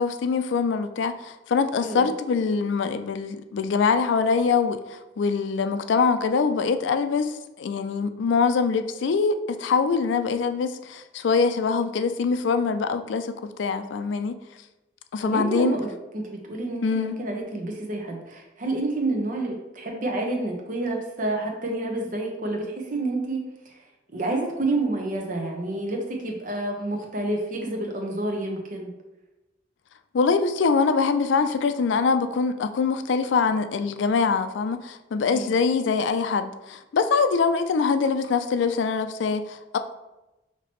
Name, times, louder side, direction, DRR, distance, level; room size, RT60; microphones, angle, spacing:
voice 1, 0.0-14.4 15.1-15.8 16.8-17.2 30.1-39.8, left 5 dB, 80° left, 9 dB, 0.4 m, -24 dB
voice 2, 1.8-2.1 15.2-23.5 24.1-28.9 35.3-35.6, right 2 dB, 45° right, 1 dB, 0.8 m, -29 dB
5.8 x 2.9 x 3.0 m, 1.0 s
head